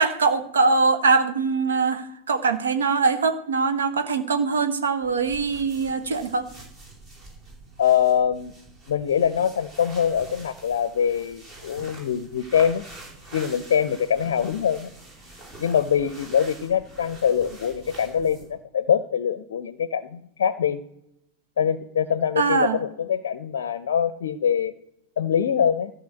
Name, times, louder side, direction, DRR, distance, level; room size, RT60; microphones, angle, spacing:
voice 1, 0.0-6.5 22.4-22.8, right 4 dB, 65° right, 10 dB, 1.2 m, -22 dB
sound 1, 5.0-18.6, right 2 dB, 35° right, 4.3 m, -46 dB
voice 2, 7.8-8.5 8.9-12.8 13.3-14.9 15.6-20.8 21.6-24.7 25.2-25.9, left 8 dB, 60° left, 16 dB, 0.5 m, -23 dB
13.5 x 5.6 x 7.7 m, 0.80 s
figure-of-eight pair, 90°, 0 cm